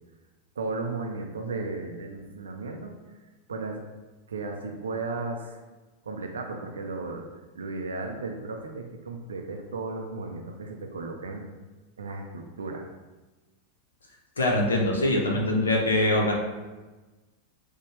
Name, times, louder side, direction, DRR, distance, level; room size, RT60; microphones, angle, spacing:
voice 1, 0.6-2.9 3.5-3.8 4.3-5.6 6.0-7.2 7.5-11.4 12.0-12.9, right 3 dB, 70° right, 2 dB, 0.4 m, -35 dB
voice 2, 14.4-16.3, left 1 dB, 70° left, -1 dB, 0.7 m, -23 dB
5.0 x 2.2 x 3.2 m, 1.2 s
figure-of-eight pair, 90°, 0 cm